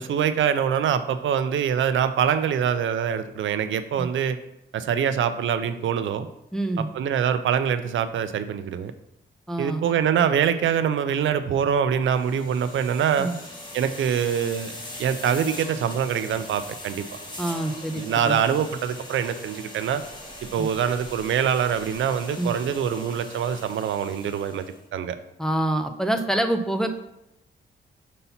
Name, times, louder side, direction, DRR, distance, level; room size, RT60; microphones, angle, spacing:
voice 1, 0.0-4.4 4.7-6.3 6.8-8.9 9.6-13.3 13.7-14.7 15.0-17.0 18.0-20.0 20.5-24.6 24.9-25.2, right 8 dB, 80° right, 10 dB, 0.5 m, -24 dB
voice 2, 6.5-6.9 9.5-9.8 13.2-13.4 17.4-18.4 20.6-20.7 22.4-22.5 25.4-26.9, right 1 dB, 5° left, 5 dB, 0.5 m, -26 dB
sound 1, 12.1-24.8, left 1 dB, 25° left, 1.1 m, -41 dB
5.5 x 4.1 x 5.6 m, 0.85 s
wide cardioid pair, 150°, 20 cm